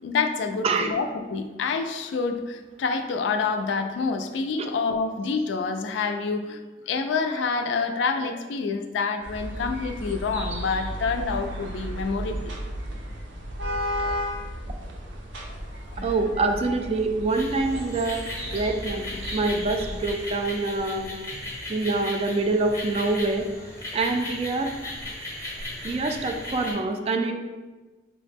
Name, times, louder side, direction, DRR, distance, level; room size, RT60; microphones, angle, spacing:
voice 1, 0.0-6.6 6.9-12.5 15.9-16.1, left 4 dB, 75° left, 7 dB, 0.3 m, -27 dB
sound 1, 9.2-20.1, equal, 80° right, 0.6 m, -34 dB
voice 2, 16.0-18.2 18.5-19.1 19.3-21.1 21.7-23.5 23.9-24.7 25.8-27.3, right 3 dB, 35° right, 5 dB, 0.3 m, -25 dB
sound 2, 17.3-26.7, left 1 dB, 15° left, 0.7 m, -37 dB
4.7 x 2.1 x 3.3 m, 1.3 s
head